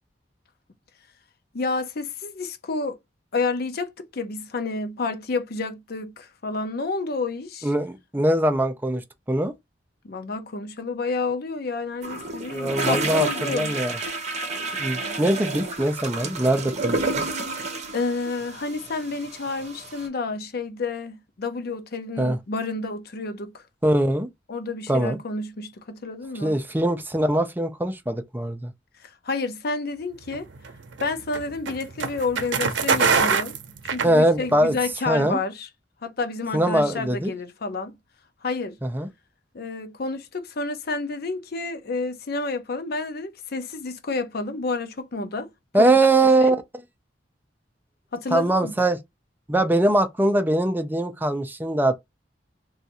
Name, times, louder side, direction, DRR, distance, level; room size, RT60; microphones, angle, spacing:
voice 1, 1.5-3.0 3.3-7.7 10.0-13.8 17.9-23.6 24.5-26.6 29.0-30.5 31.0-33.6 33.8-35.7 36.0-38.0 38.4-38.8 39.5-45.5 45.8-45.9 46.5-46.6 48.1-48.7, left 3 dB, 55° left, 0.6 m, -30 dB
voice 2, 7.6-9.5 12.5-14.0 14.8-17.2 22.2-22.4 23.8-24.3 24.9-25.2 26.4-28.7 34.0-34.7 35.1-35.4 36.5-37.3 38.8-39.1 45.7-46.6 48.3-49.0 49.5-52.0, right 1 dB, 10° right, 0.5 m, -22 dB
sound 1, 12.0-20.1, right 3 dB, 40° right, 0.9 m, -30 dB
sound 2, 30.3-34.7, right 5 dB, 85° right, 0.6 m, -24 dB
2.6 x 2.4 x 4.0 m
head